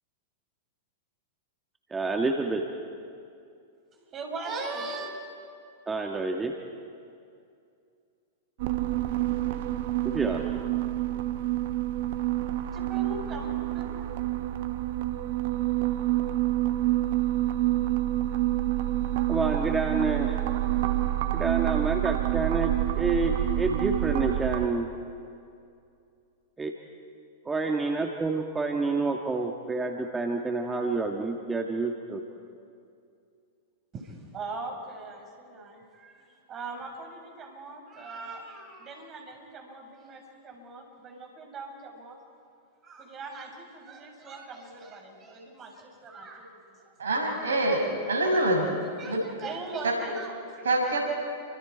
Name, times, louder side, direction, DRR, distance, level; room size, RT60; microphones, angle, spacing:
voice 1, 1.9-2.6 5.9-6.6 10.0-10.5 19.3-20.4 21.3-24.9 26.6-26.7 27.5-32.2, right 3 dB, 15° right, 2 dB, 1.9 m, -28 dB
voice 2, 4.0-5.1 12.7-14.3 33.9-42.2 42.8-46.8 47.0-47.5 48.8-50.7, right 3 dB, 30° right, 2 dB, 5.9 m, -40 dB
sound 1, 8.6-24.7, right 15 dB, 60° right, 1.3 m, -27 dB
voice 3, 47.0-48.7 49.1-49.2 49.8-49.9 50.6-51.0, right 1 dB, 75° right, 1 dB, 6.3 m, -25 dB
29.5 x 25.5 x 4.6 m, 2.4 s
figure-of-eight pair, 100°, 0 cm